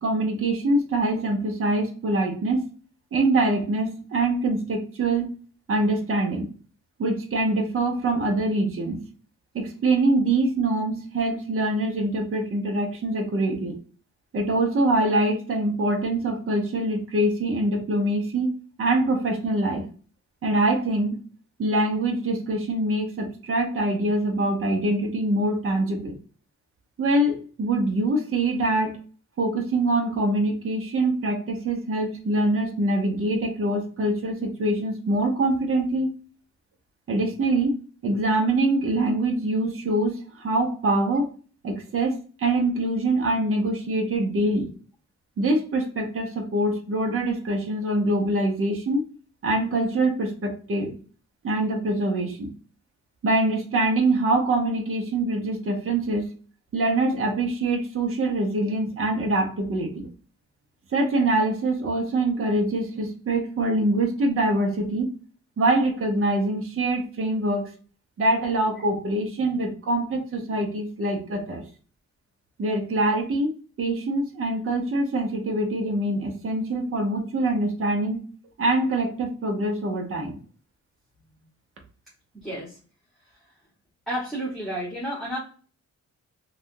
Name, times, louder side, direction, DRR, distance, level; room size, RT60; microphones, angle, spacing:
voice 1, 0.0-2.6 3.1-5.3 5.7-6.5 7.0-9.0 9.5-13.8 14.3-18.5 18.8-19.8 20.4-21.2 21.6-26.2 27.0-29.0 29.4-36.1 37.1-37.8 38.0-41.3 41.6-44.7 45.4-49.0 49.4-51.0 51.4-52.5 53.2-56.3 56.7-60.0 60.9-65.1 65.6-67.7 68.2-71.6 72.6-73.5 73.8-78.2 78.6-80.4, right 2 dB, 45° right, 2 dB, 0.8 m, -24 dB
voice 2, 82.4-82.8 84.1-85.4, equal, ahead, -8 dB, 1.1 m, -31 dB
3.3 x 2.4 x 2.6 m, 0.39 s
wide cardioid pair, 125°, 30 cm